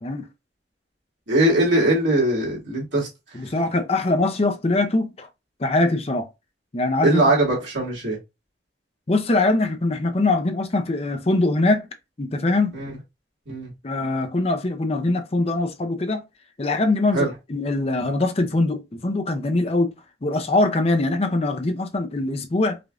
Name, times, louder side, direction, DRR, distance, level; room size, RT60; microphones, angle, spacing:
voice 1, 1.3-3.1 7.0-8.2 13.5-13.7 17.1-17.3, right 1 dB, 90° right, 2.1 m, -20 dB
voice 2, 3.3-5.3 5.6-6.3 6.7-7.2 9.1-11.9 12.2-12.8 13.8-16.2 16.6-19.9 20.2-22.8, left 2 dB, 35° left, 0.5 m, -22 dB
5.0 x 2.5 x 2.4 m
head